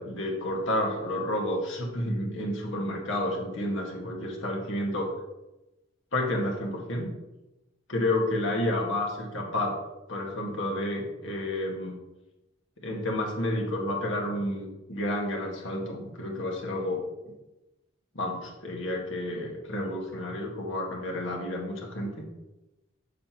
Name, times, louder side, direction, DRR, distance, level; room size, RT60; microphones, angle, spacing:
voice 1, 0.0-5.1 6.1-7.1 7.9-9.8 10.1-11.9 12.8-17.0 18.2-22.1, left 1 dB, 75° left, -1 dB, 1.7 m, -30 dB
7.4 x 6.7 x 3.0 m, 1.0 s
head